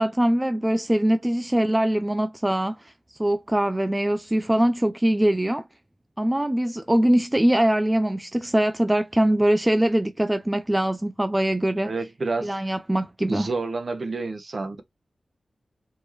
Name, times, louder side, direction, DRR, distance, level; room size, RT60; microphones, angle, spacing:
voice 1, 0.0-2.9 3.2-5.6 6.2-11.9 12.4-13.5, right 1 dB, 15° right, 0.4 m, -22 dB
voice 2, 11.8-12.6 13.3-14.8, right 3 dB, 50° right, 1.2 m, -29 dB
4.5 x 2.9 x 2.9 m
wide cardioid pair, 75°, 0 cm